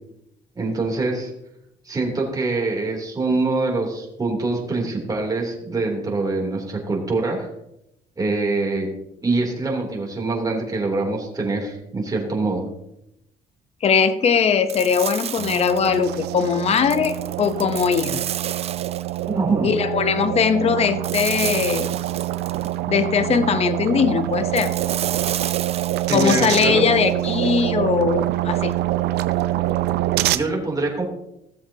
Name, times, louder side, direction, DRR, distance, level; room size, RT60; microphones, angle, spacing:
voice 1, 0.5-1.3 1.8-7.5 8.2-8.9 9.2-12.7 19.3-19.7 26.1-26.8 30.3-31.0, right 3 dB, 20° right, 0 dB, 2.9 m, -24 dB
voice 2, 13.8-18.2 19.6-21.9 22.9-24.7 26.1-28.7, left 6 dB, 40° left, 10 dB, 0.8 m, -20 dB
sound 1, 14.7-16.1 16.7-19.3 21.0-22.8 24.6-26.3, right 9 dB, 40° right, 0.4 m, -31 dB
sound 2, 15.4-30.4, right 15 dB, 75° right, 0.6 m, -25 dB
16.5 x 7.2 x 2.8 m, 0.82 s
cardioid pair, 110°, 17 cm